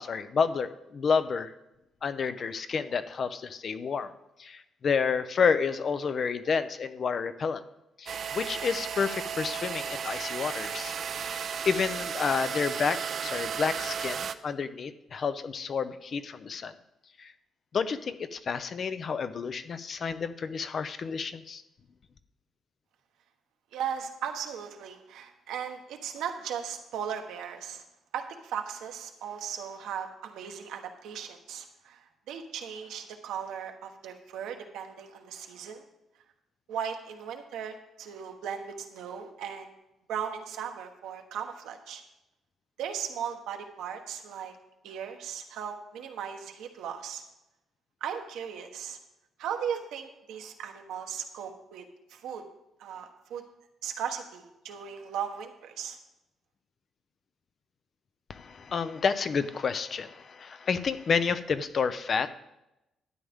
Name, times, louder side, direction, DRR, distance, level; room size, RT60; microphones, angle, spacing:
voice 1, 0.0-1.5 2.0-4.1 4.4-7.6 8.0-11.0 11.2-16.7 17.2-17.3 17.7-21.6 58.3-62.3, left 5 dB, 50° left, 12 dB, 0.6 m, -30 dB
sound 1, 8.1-14.3, right 7 dB, 60° right, 0.5 m, -34 dB
voice 2, 23.7-27.8 28.1-35.8 36.7-39.7 40.1-42.0 42.8-44.6 44.8-47.2 48.0-49.0 49.4-52.4 52.8-53.4 53.8-56.0, right 8 dB, 85° right, 4 dB, 1.2 m, -37 dB
12.0 x 9.0 x 3.6 m, 0.91 s
cardioid pair, 90°, 0 cm